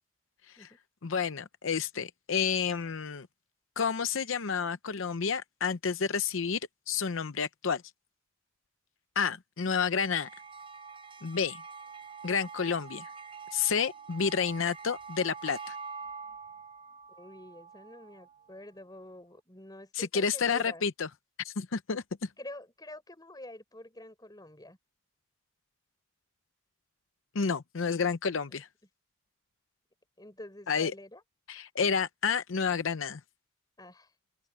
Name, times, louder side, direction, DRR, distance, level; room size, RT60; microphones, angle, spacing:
voice 1, 1.0-3.3 3.8-6.6 6.9-7.8 9.2-10.3 11.2-11.6 12.2-13.1 13.5-15.8 19.9-21.1 21.4-22.3 27.3-28.7 30.7-30.9 31.5-33.2, left 6 dB, 75° left, 0.7 m, -30 dB
sound 1, 9.9-18.5, right 5 dB, 25° right, 0.7 m, -45 dB
voice 2, 17.2-20.8 22.4-24.8 28.5-28.6 30.2-31.2 33.8-34.1, left 1 dB, 20° left, 4.6 m, -47 dB
open air
head